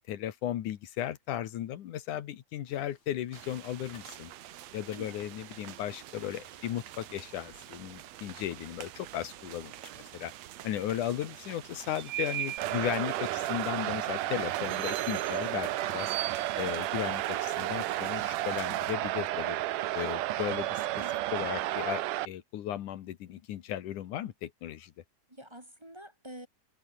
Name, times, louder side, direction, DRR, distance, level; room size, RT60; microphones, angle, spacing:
voice 1, 0.1-4.3 4.7-9.7 10.1-10.3 10.6-16.1 16.6-19.6 19.9-20.9 21.3-24.9, left 11 dB, 80° left, 2.8 m, -36 dB
sound 1, 2.7-7.8, left 4 dB, 55° left, 6.2 m, -61 dB
sound 2, 3.3-18.9, right 13 dB, 65° right, 2.0 m, -43 dB
voice 2, 4.9-5.3 21.0-21.3 25.3-26.5, right 1 dB, 10° right, 1.5 m, -47 dB
sound 3, 12.6-22.3, right 15 dB, 85° right, 2.5 m, -32 dB
omnidirectional pair, 3.5 m